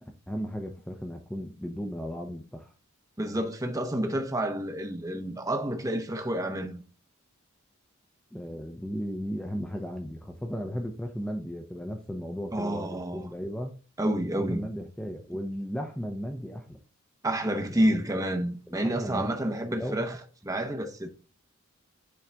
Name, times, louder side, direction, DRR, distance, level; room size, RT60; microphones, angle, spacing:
voice 1, 0.3-2.7 8.3-13.7 14.3-16.8 17.8-17.9 18.7-19.3 19.7-20.1, equal, 5° left, 0.6 m, -35 dB
voice 2, 3.2-6.8 12.5-13.3 14.0-14.6 17.2-21.1, right 1 dB, 15° right, 0.9 m, -29 dB
8.5 x 4.0 x 3.4 m
head